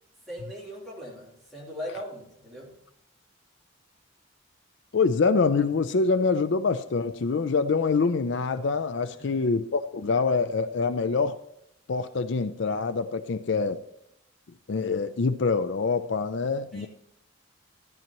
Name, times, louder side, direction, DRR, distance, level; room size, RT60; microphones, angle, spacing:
voice 1, 0.3-2.7 9.1-9.4 16.7-16.9, equal, ahead, -6 dB, 3.2 m, -39 dB
voice 2, 4.9-11.4 11.9-13.8 14.7-16.9, left 4 dB, 60° left, 12 dB, 0.4 m, -25 dB
14.5 x 10.5 x 3.0 m, 0.79 s
head